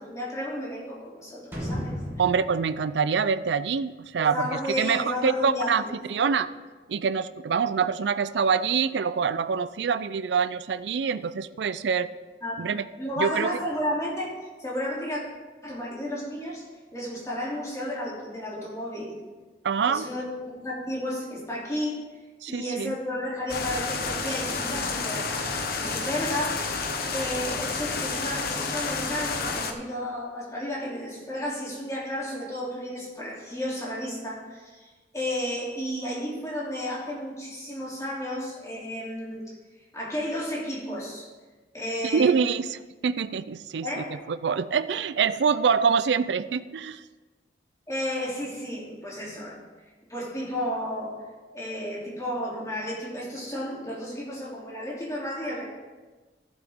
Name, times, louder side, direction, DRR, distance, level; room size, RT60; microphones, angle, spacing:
voice 1, 0.0-2.0 4.2-6.0 12.4-12.6 13.0-15.2 15.6-16.6 16.9-19.2 19.9-22.0 22.5-26.6 27.1-39.6 39.9-41.3 41.7-42.4 43.8-44.2 47.9-49.6 50.1-51.2 51.5-55.6, left 1 dB, 20° left, -5 dB, 2.9 m, -32 dB
sound 1, 1.5-4.3 4.6-4.7, equal, 15° right, 2.3 m, -36 dB
voice 2, 2.2-4.4 4.8-5.8 6.1-6.5 6.9-12.1 12.6-12.9 13.2-13.5 19.6-20.1 22.4-23.0 42.1-47.0, right 6 dB, 75° right, 15 dB, 0.4 m, -25 dB
sound 2, 23.5-29.7, left 4 dB, 55° left, 0.9 m, -30 dB
15.0 x 7.3 x 3.6 m, 1.3 s
head